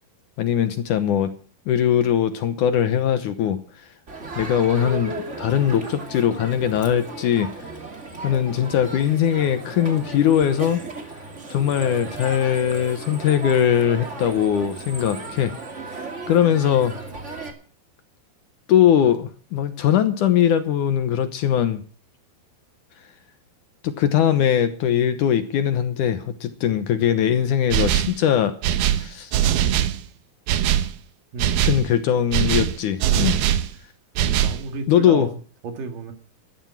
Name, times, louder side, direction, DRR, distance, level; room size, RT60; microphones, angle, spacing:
voice 1, 0.4-1.3 1.7-3.6 4.4-7.7 8.2-10.8 11.5-15.5 15.9-16.9 18.7-21.8 23.8-28.6 28.9-29.3 31.6-33.4 34.9-35.3, left 9 dB, 65° left, 10 dB, 2.2 m, -21 dB
Crowd, 4.1-17.5, right 2 dB, 25° right, 1.9 m, -35 dB
sound 1, 27.7-28.2 28.6-30.0 30.5-30.9 31.4-31.9 32.3-33.7 34.2-34.6, right 11 dB, 80° right, 2.9 m, -21 dB
voice 2, 31.3-31.9 34.3-35.4 35.6-36.1, right 3 dB, 60° right, 6 dB, 3.5 m, -32 dB
13.5 x 13.0 x 6.0 m, 0.41 s
omnidirectional pair, 4.4 m